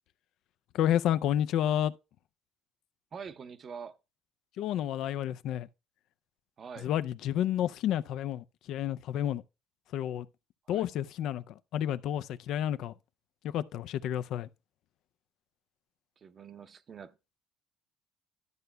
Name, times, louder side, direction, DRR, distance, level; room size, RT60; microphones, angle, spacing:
voice 1, 0.7-1.9 4.6-5.7 6.8-9.4 9.9-10.3 10.7-12.9 13.4-14.5, left 11 dB, 70° left, 0.3 m, -30 dB
voice 2, 3.1-4.0 6.6-6.9 10.7-10.9 16.2-17.2, right 6 dB, 45° right, 0.6 m, -45 dB
12.5 x 6.7 x 2.2 m
supercardioid pair, 85°, 0 cm